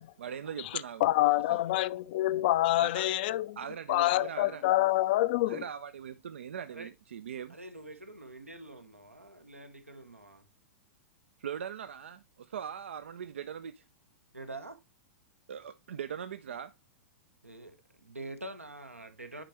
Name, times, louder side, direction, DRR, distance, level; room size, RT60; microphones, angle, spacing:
voice 1, 0.2-1.1 1.5-1.6 2.8-3.1 3.6-4.6 5.5-7.6 11.4-13.8 15.5-16.7, right 8 dB, 60° right, 0.4 m, -40 dB
voice 2, 1.0-3.6 3.9-5.6, left 16 dB, 45° left, 0.4 m, -26 dB
voice 3, 7.5-10.4 14.3-14.8 17.4-19.4, right 2 dB, 85° right, 1.1 m, -45 dB
8.7 x 5.0 x 3.0 m
figure-of-eight pair, 100°, 7 cm